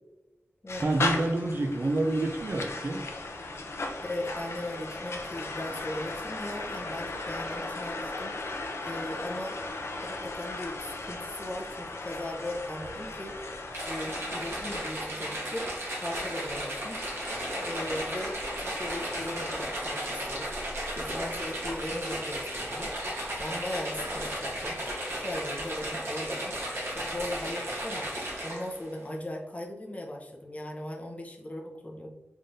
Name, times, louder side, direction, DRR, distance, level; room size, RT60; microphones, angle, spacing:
sound 1, 0.7-19.8, left 2 dB, 70° left, 0.5 m, -37 dB
voice 1, 0.8-3.1, right 2 dB, 45° right, 5 dB, 0.4 m, -28 dB
voice 2, 4.0-8.6 8.8-9.6 10.0-13.4 13.8-15.7 16.0-17.0 17.6-20.5 21.0-22.9 23.4-24.8 25.2-26.5 26.9-28.1 28.4-32.1, left 1 dB, 30° left, 0 dB, 0.7 m, -38 dB
sound 2, 13.7-28.8, right 1 dB, 65° right, 1.2 m, -35 dB
3.6 x 3.5 x 2.6 m, 1.1 s
wide cardioid pair, 85°, 5 cm